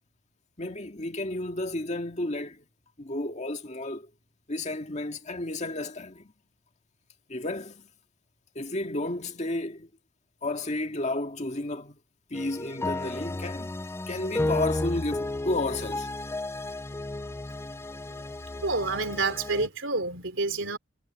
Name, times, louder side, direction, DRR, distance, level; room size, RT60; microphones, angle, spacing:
voice 1, 0.6-2.6 3.0-4.1 4.5-6.3 7.3-7.9 8.6-9.9 10.4-12.0 12.3-13.7 14.1-16.1, left 2 dB, 35° left, 2.0 m, -32 dB
sound 1, 12.3-19.7, left 2 dB, 15° left, 0.4 m, -33 dB
voice 2, 18.6-20.8, right 3 dB, 75° right, 3.3 m, -28 dB
head